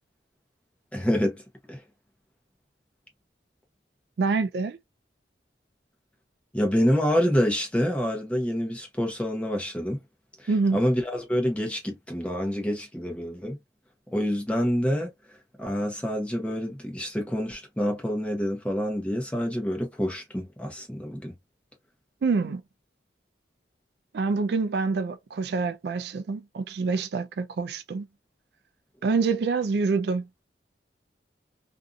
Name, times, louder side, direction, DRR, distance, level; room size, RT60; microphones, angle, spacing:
voice 1, 0.9-1.4 1.7-1.8 6.5-10.0 10.4-13.6 14.1-15.1 15.6-21.3, equal, 5° left, 0.8 m, -27 dB
voice 2, 4.2-4.8 10.5-10.8 22.2-22.6 24.1-28.1 29.0-30.3, right 4 dB, 60° right, 0.3 m, -26 dB
2.6 x 2.6 x 2.3 m
head